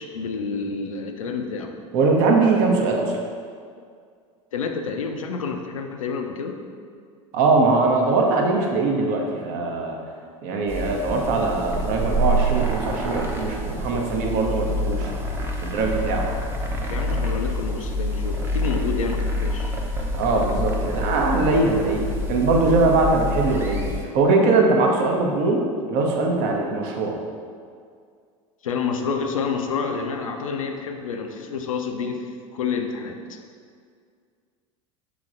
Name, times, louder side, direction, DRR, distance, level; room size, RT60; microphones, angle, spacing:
voice 1, 0.0-1.7 4.5-6.6 16.9-19.8 28.6-33.4, left 5 dB, 80° left, 4 dB, 0.4 m, -29 dB
voice 2, 1.9-3.1 7.3-10.0 10.4-15.1 15.6-16.3 20.2-27.2, right 3 dB, 55° right, 1 dB, 0.7 m, -21 dB
sound 1, 10.7-24.0, equal, 15° right, 0.6 m, -27 dB
5.8 x 3.1 x 2.5 m, 2.1 s
figure-of-eight pair, 80°, 17 cm